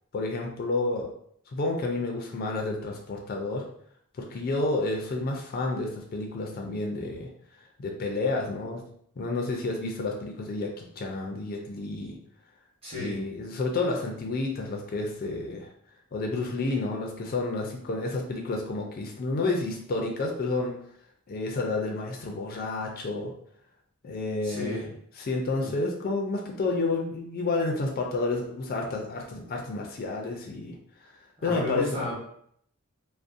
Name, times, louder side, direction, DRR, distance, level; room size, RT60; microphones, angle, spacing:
voice 1, 0.1-1.1 1.5-3.7 4.2-7.3 7.8-8.8 9.2-12.2 13.0-15.7 16.1-20.7 21.3-23.3 24.0-24.8 25.2-30.7 31.4-32.0, left 3 dB, 45° left, 1 dB, 0.3 m, -30 dB
voice 2, 12.8-13.2 24.4-24.9 25.6-25.7 31.4-32.1, left 2 dB, 30° right, -7 dB, 1.0 m, -33 dB
2.5 x 2.0 x 2.4 m, 0.67 s
head